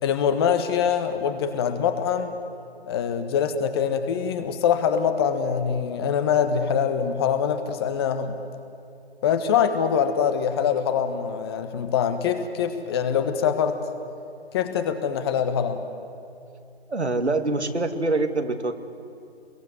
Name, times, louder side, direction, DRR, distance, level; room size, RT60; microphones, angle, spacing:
voice 1, 0.0-2.3 2.8-8.3 9.2-13.8 14.5-15.8, left 7 dB, 25° left, 8 dB, 1.5 m, -24 dB
voice 2, 16.9-18.7, right 2 dB, 85° right, 7 dB, 2.3 m, -25 dB
27.0 x 22.0 x 9.5 m, 2.5 s
figure-of-eight pair, 145°, 33 cm